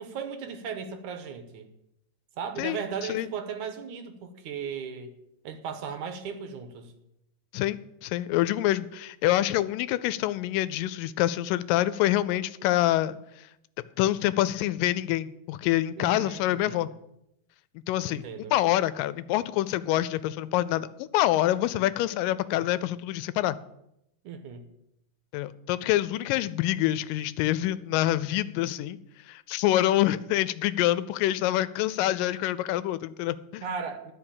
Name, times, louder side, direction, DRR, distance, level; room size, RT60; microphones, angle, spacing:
voice 1, 0.0-1.7 2.4-5.1 5.4-6.9 16.0-16.8 18.0-18.5 24.2-24.7 33.6-34.1, right 6 dB, 70° right, 7 dB, 2.4 m, -36 dB
voice 2, 7.5-13.5 14.0-16.9 17.9-18.2 18.5-23.6 25.3-29.0 29.3-33.6, left 14 dB, 90° left, 16 dB, 2.2 m, -26 dB
12.0 x 5.4 x 8.6 m, 0.82 s
omnidirectional pair, 3.8 m